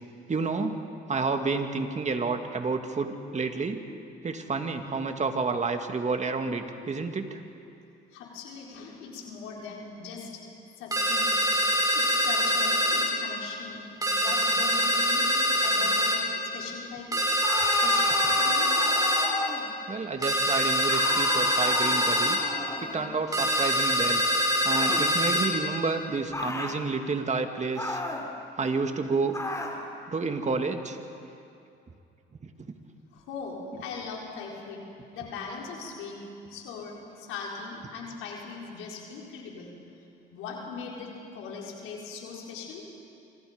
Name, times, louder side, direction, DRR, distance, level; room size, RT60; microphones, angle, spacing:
voice 1, 0.3-0.7 1.1-3.8 4.2-7.4 19.9-22.4 22.8-24.2 24.6-28.0 28.6-29.4 30.1-31.0 32.4-32.5, right 4 dB, 35° right, 5 dB, 2.3 m, -30 dB
voice 2, 8.1-10.4 10.8-11.4 11.9-13.8 14.1-15.2 15.6-16.2 16.5-17.2 17.7-18.7 33.1-34.8 35.1-36.2 36.5-39.7 40.3-42.8, left 5 dB, 85° left, -2 dB, 4.6 m, -40 dB
sound 1, 10.9-13.1 14.0-16.2 17.1-19.3 20.2-22.4 23.3-25.5, equal, 15° right, 5.7 m, -24 dB
sound 2, 17.4-19.7 20.8-23.1 24.7-25.1 26.3-26.8 27.8-28.3 29.3-29.8, left 2 dB, 15° left, 3.8 m, -32 dB
27.5 x 25.5 x 5.2 m, 2.7 s
supercardioid pair, 80°, 21 cm